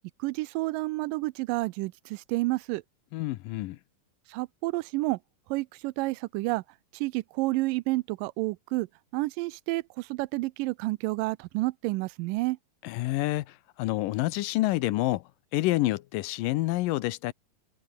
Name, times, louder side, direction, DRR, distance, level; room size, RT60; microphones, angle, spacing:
voice 1, 0.2-2.8 4.3-5.2 5.5-6.6 6.9-8.9 9.1-12.6, right 21 dB, 85° right, 2.2 m, -30 dB
voice 2, 3.1-3.8 12.8-15.2 15.5-17.3, left 17 dB, 85° left, 2.4 m, -28 dB
omnidirectional pair, 3.8 m